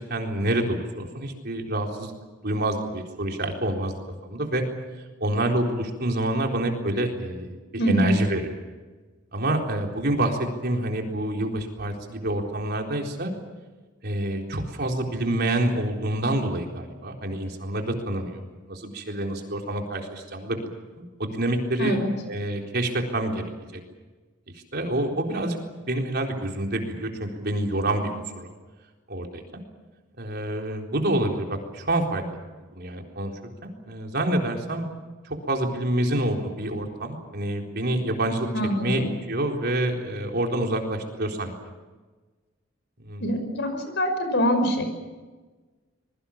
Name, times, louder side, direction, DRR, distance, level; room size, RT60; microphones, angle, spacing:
voice 1, 0.0-2.1 2.4-3.9 4.2-4.6 5.2-7.5 7.9-8.6 9.3-13.3 14.0-18.4 18.7-20.6 21.0-22.0 22.2-23.4 23.7-23.8 24.7-25.6 25.9-28.5 29.1-29.6 30.2-32.2 32.7-33.3 33.6-34.9 35.2-38.5 38.8-41.5 43.0-43.2, right 1 dB, 50° right, 2 dB, 4.0 m, -27 dB
voice 2, 7.8-8.2 21.8-22.1 38.5-39.1 43.2-44.9, equal, 60° left, 7 dB, 5.6 m, -24 dB
25.5 x 22.5 x 7.3 m, 1.3 s
head